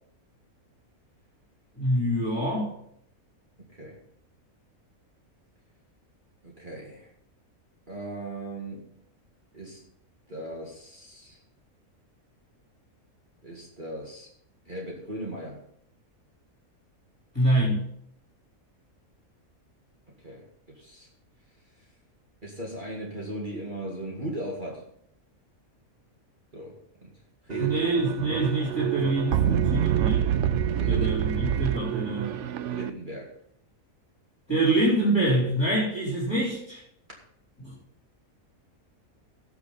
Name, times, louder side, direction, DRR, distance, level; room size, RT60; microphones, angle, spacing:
voice 1, 1.8-2.7 17.3-17.8 27.6-30.3 30.9-32.4 34.5-36.8 37.6-37.8, right 1 dB, 15° left, -6 dB, 3.9 m, -25 dB
voice 2, 3.6-4.0 6.4-7.1 7.9-8.9 9.5-9.8 10.3-11.4 13.4-14.3 14.7-15.6 20.2-21.1 22.4-24.8 26.5-26.8 27.0-27.1 27.4-27.9 30.8-31.1 32.7-33.3, right 1 dB, 35° right, -2 dB, 2.2 m, -37 dB
sound 1, 27.5-32.9, right 10 dB, 65° right, 0.9 m, -26 dB
18.0 x 6.4 x 4.2 m, 0.69 s
omnidirectional pair, 1.5 m